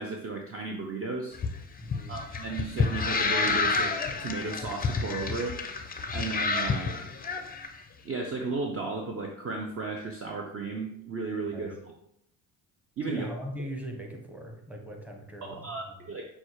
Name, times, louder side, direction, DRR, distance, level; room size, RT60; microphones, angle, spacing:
voice 1, 0.0-1.4 2.1-5.6 6.1-7.0 8.0-11.7 13.0-13.3 15.4-16.3, right 3 dB, 30° right, 2 dB, 0.6 m, -34 dB
sound 1, 1.3-7.7, left 4 dB, 20° left, 0.5 m, -29 dB
voice 2, 1.8-2.1 11.5-11.7 13.1-15.7, equal, 5° right, 2 dB, 1.0 m, -39 dB
6.1 x 2.4 x 3.0 m, 0.75 s
hypercardioid pair, 60°, 49 cm